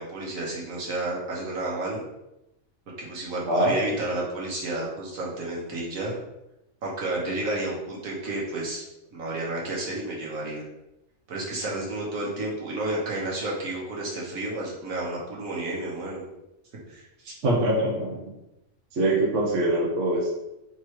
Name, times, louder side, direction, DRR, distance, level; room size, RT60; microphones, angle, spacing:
voice 1, 0.0-2.0 3.0-6.2 6.8-8.8 9.1-10.6 11.3-16.2 16.9-17.4, right 2 dB, 85° right, -4 dB, 1.6 m, -31 dB
voice 2, 3.5-3.8 17.4-18.1 18.9-20.3, right 1 dB, 65° right, -2 dB, 1.2 m, -23 dB
3.7 x 3.1 x 4.4 m, 0.90 s
omnidirectional pair, 1.4 m